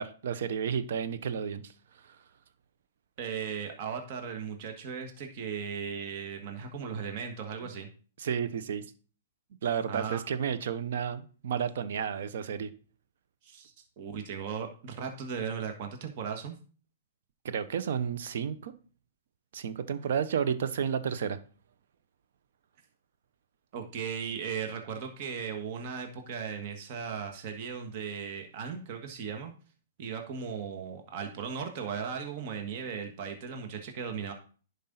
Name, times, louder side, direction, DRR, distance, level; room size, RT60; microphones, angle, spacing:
voice 1, 0.0-1.7 2.0-2.2 8.2-8.8 9.6-12.7 17.4-18.7 19.5-21.4, right 7 dB, 65° right, 12 dB, 0.9 m, -31 dB
voice 2, 3.2-7.9 9.9-10.2 13.4-16.5 23.7-29.5 30.0-34.3, right 6 dB, 50° right, 4 dB, 1.6 m, -37 dB
10.5 x 5.3 x 4.0 m, 0.40 s
hypercardioid pair, 125°, 0 cm